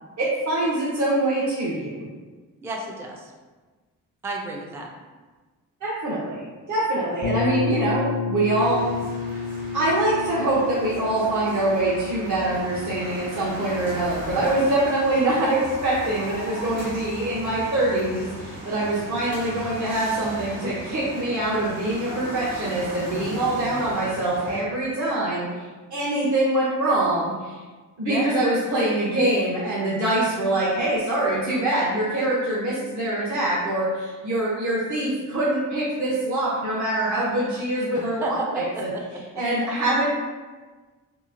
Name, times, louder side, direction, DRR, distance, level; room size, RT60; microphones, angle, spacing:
voice 1, 0.2-2.1 5.8-9.0 9.7-25.6 25.9-27.5 28.0-38.9 39.4-40.1, right 1 dB, 55° right, -8 dB, 0.8 m, -24 dB
voice 2, 2.6-3.3 4.2-4.9 28.1-28.4 38.0-39.0 39.3-39.4, right 2 dB, 10° right, 0 dB, 0.3 m, -31 dB
sound 1, 7.2-16.9, left 5 dB, 75° left, 0.6 m, -32 dB
sound 2, 8.6-24.6, right 1 dB, 85° right, 1.0 m, -37 dB
2.9 x 2.6 x 2.5 m, 1.3 s
cardioid pair, 90°, 33 cm